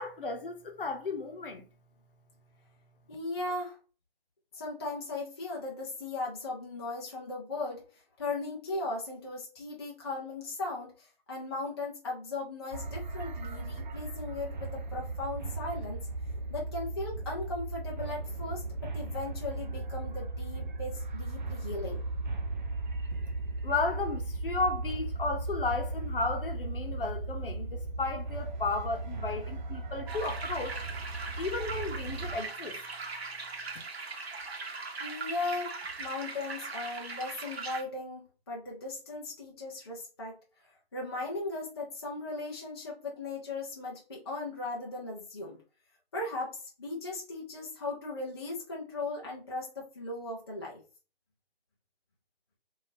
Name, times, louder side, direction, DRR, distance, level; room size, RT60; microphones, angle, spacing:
voice 1, 0.0-1.6 23.6-30.8 31.4-32.8, left 3 dB, 60° left, 0.9 m, -34 dB
voice 2, 3.1-3.8 4.5-7.9 8.2-16.1 16.5-22.0 35.0-40.4 40.9-45.6 46.1-50.8, left 2 dB, 25° left, 0.5 m, -37 dB
sound 1, 12.7-32.4, right 2 dB, 50° right, 0.5 m, -36 dB
sound 2, 30.1-37.8, right 4 dB, 85° right, 0.9 m, -40 dB
3.4 x 2.6 x 2.7 m
figure-of-eight pair, 160°, 30 cm